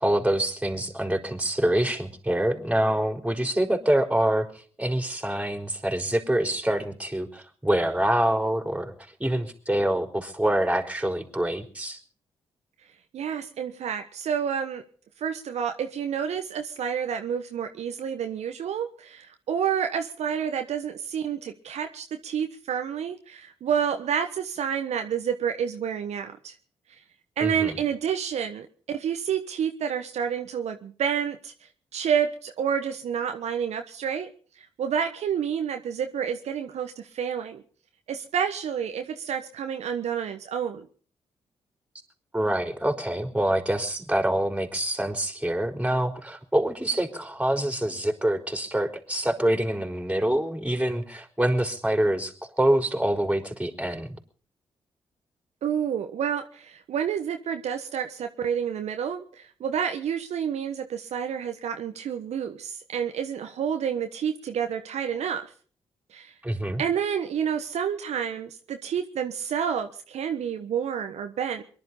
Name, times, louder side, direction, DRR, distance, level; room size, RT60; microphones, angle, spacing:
voice 1, 0.0-8.9 9.2-12.0 27.4-27.8 42.3-54.2 66.4-66.8, right 1 dB, 10° right, 5 dB, 4.2 m, -26 dB
voice 2, 13.1-14.8 15.2-26.5 26.9-27.0 27.4-31.5 31.9-34.3 34.6-37.6 38.1-40.9 55.6-65.5 66.1-66.3 66.8-71.6, right 8 dB, 70° right, 6 dB, 1.2 m, -29 dB
23.0 x 11.5 x 5.5 m, 0.44 s
hypercardioid pair, 40°, 12 cm